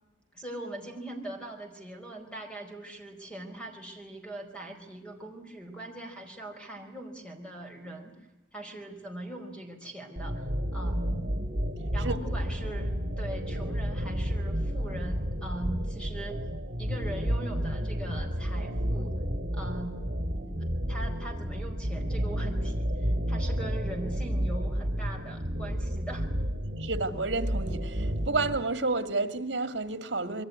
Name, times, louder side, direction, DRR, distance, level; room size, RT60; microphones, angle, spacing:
voice 1, 0.3-8.2 8.5-10.4 10.7-11.2 11.9-16.4 16.8-19.2 19.5-20.1 20.9-26.3, right 1 dB, 5° left, 4.6 m, -41 dB
sound 1, 10.2-28.6, equal, 50° right, 4.2 m, -31 dB
voice 2, 26.8-30.4, right 3 dB, 70° right, 2.0 m, -30 dB
26.5 x 22.5 x 9.5 m
head